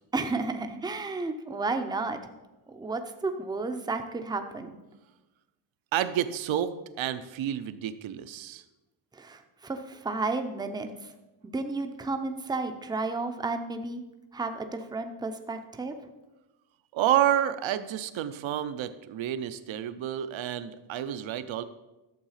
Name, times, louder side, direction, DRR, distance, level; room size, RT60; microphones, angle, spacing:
voice 1, 0.1-2.2 2.7-4.8 9.1-11.1 11.4-14.0 14.3-15.9, right 3 dB, 10° right, 6 dB, 0.6 m, -32 dB
voice 2, 5.9-8.6 16.9-21.6, right 11 dB, 65° right, 12 dB, 0.8 m, -29 dB
12.0 x 7.3 x 5.7 m, 1.1 s
wide cardioid pair, 170°, 50 cm